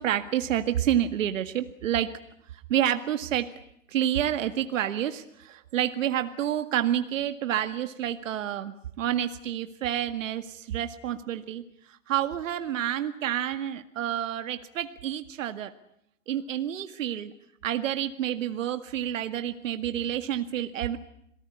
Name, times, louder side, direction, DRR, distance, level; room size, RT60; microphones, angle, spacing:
voice 1, 0.0-2.1 2.7-3.5 3.9-11.6 12.1-15.7 16.3-17.3 17.6-21.0, right 11 dB, 80° right, 9 dB, 1.9 m, -29 dB
27.5 x 19.0 x 9.7 m, 0.74 s
hypercardioid pair, 125°, 38 cm